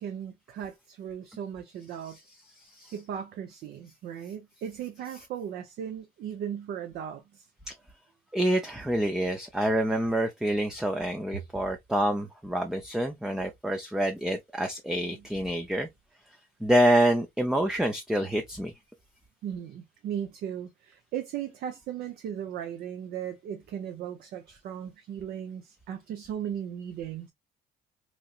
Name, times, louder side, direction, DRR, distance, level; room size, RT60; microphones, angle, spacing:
voice 1, 0.0-2.2 2.9-7.5 15.1-15.2 19.4-27.3, right 9 dB, 65° right, 0.5 m, -37 dB
voice 2, 2.6-2.9 7.7-7.8 8.3-15.9 16.6-18.7, right 1 dB, 5° right, 0.4 m, -27 dB
3.1 x 2.7 x 2.3 m
cardioid pair, 110°, 17 cm